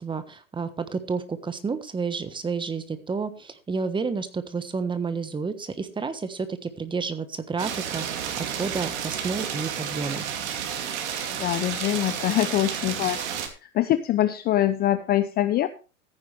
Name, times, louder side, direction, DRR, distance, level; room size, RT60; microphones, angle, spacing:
voice 1, 0.0-10.3, right 4 dB, 10° right, 10 dB, 1.3 m, -30 dB
sound 1, 7.6-13.5, right 8 dB, 55° right, 2.7 m, -31 dB
voice 2, 11.3-13.2 13.6-15.7, left 13 dB, 25° left, 13 dB, 0.6 m, -24 dB
14.5 x 9.7 x 3.4 m, 0.34 s
hypercardioid pair, 105°, 40 cm